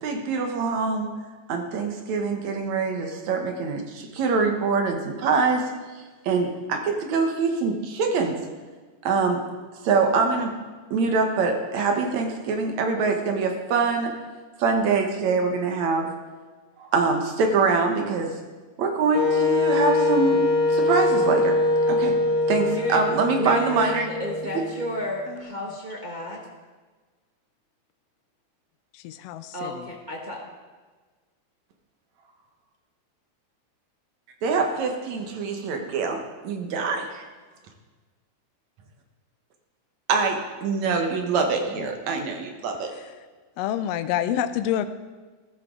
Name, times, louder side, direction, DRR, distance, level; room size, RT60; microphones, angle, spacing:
voice 1, 0.0-8.4 9.0-9.4 9.7-10.6 10.9-14.2 14.6-16.1 16.8-18.4 18.8-20.4 20.7-21.6 21.9-22.1 22.5-24.1 34.4-37.2 40.1-42.9, right 4 dB, 70° right, 3 dB, 2.6 m, -24 dB
Wind instrument woodwind instrument, 19.1-25.0, left 2 dB, 20° left, 3.5 m, -23 dB
voice 2, 22.6-23.0 23.4-26.4 29.5-30.4, equal, 35° right, -3 dB, 0.7 m, -31 dB
voice 3, 25.3-25.7 28.9-29.9 41.7-41.9 43.6-44.9, left 11 dB, 80° left, 10 dB, 1.5 m, -28 dB
14.5 x 13.5 x 3.9 m, 1.4 s
omnidirectional pair, 3.5 m